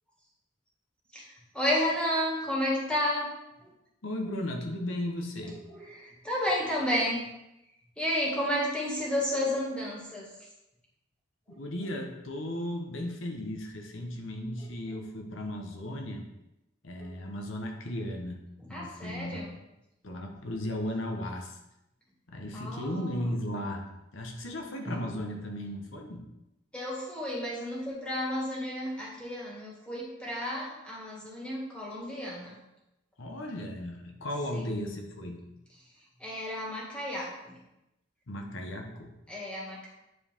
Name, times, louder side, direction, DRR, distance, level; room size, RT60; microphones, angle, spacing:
voice 1, 1.1-3.3 3.6-3.7 5.4-7.2 8.0-10.5 11.5-11.6 14.6-15.0 17.0-17.1 18.6-19.5 22.5-23.4 24.8-25.0 26.7-32.6 34.5-34.8 35.8-37.6 39.3-39.9, left 1 dB, 5° left, -5 dB, 2.1 m, -32 dB
voice 2, 4.0-5.6 11.5-16.3 16.8-18.4 18.7-19.4 20.0-21.6 22.3-23.8 24.1-26.2 33.2-35.4 38.3-39.1, left 1 dB, 80° left, 2 dB, 1.1 m, -35 dB
9.7 x 4.6 x 3.6 m, 0.90 s
head